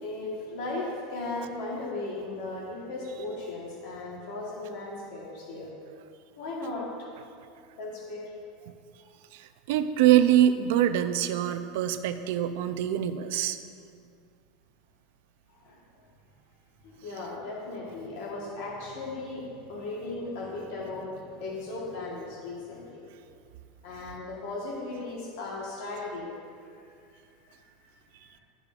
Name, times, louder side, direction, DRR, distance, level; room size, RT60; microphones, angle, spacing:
voice 1, 0.0-5.7 6.4-6.9 7.8-8.3 8.6-8.7 15.5-15.8 16.8-23.0 23.8-26.3 27.5-27.6 28.2-28.4, left 2 dB, 60° left, -4 dB, 1.3 m, -37 dB
voice 2, 9.3-13.6, right 11 dB, 60° right, 10 dB, 0.4 m, -24 dB
12.0 x 4.9 x 2.4 m, 2.4 s
supercardioid pair, 175°, 0 cm